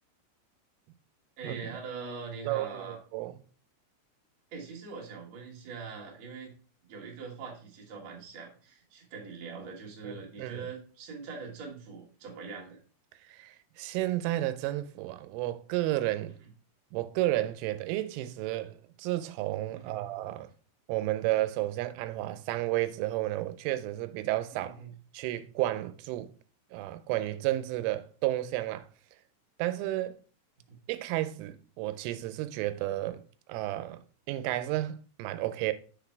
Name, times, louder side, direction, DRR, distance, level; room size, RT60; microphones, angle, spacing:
voice 1, 1.4-3.0 4.5-6.5 6.8-12.8 19.7-20.1 24.5-24.9 30.7-30.8, right 5 dB, 55° right, 1.8 m, -42 dB
voice 2, 2.5-3.4 10.0-10.6 13.2-16.4 16.9-20.5 20.9-24.8 25.1-26.3 26.7-28.9 29.6-30.2 30.9-33.2 33.5-34.0 34.3-35.7, right 16 dB, 85° right, 3.1 m, -32 dB
6.7 x 4.0 x 4.5 m
omnidirectional pair, 5.6 m